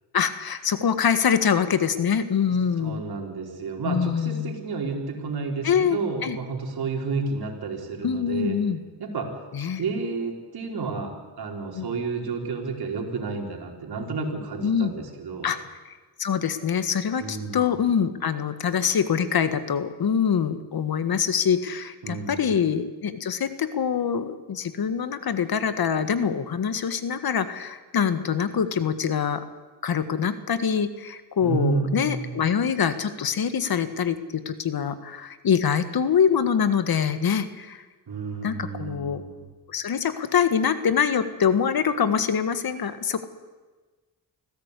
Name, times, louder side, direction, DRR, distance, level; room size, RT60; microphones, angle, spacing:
voice 1, 0.1-3.0 3.8-4.5 5.6-6.4 8.0-8.8 9.5-9.8 11.7-11.9 14.6-14.9 15.4-15.6 16.2-29.4 29.8-37.8 38.4-39.2 39.7-43.3, left 7 dB, 60° left, 11 dB, 1.7 m, -24 dB
voice 2, 2.8-8.6 9.0-9.3 9.6-15.5 17.2-17.7 22.0-22.5 31.4-32.3 38.1-39.4, right 4 dB, 60° right, 1 dB, 4.6 m, -31 dB
25.0 x 16.0 x 8.4 m, 1.3 s
cardioid pair, 80°, 42 cm